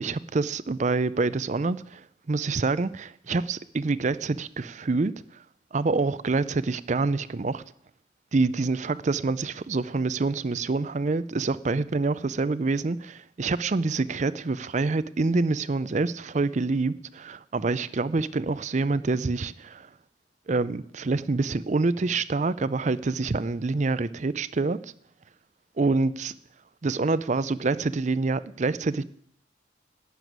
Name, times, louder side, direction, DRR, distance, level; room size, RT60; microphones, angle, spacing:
voice 1, 0.0-5.1 5.7-7.6 8.3-19.9 20.5-24.8 25.8-26.3 26.8-29.0, right 3 dB, 35° right, 0.4 m, -26 dB
12.0 x 7.0 x 9.3 m
head